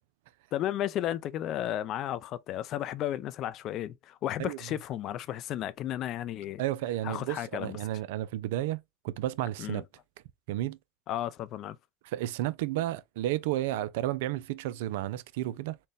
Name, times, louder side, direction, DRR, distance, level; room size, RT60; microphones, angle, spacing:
voice 1, 0.5-6.6 7.0-7.8 9.6-9.8 11.1-11.8, left 12 dB, 50° left, 0.4 m, -33 dB
voice 2, 6.6-8.8 9.0-9.8 10.5-10.8 12.0-15.8, right 14 dB, 70° right, 0.3 m, -32 dB
4.1 x 2.1 x 3.4 m
hypercardioid pair, 90°, 0 cm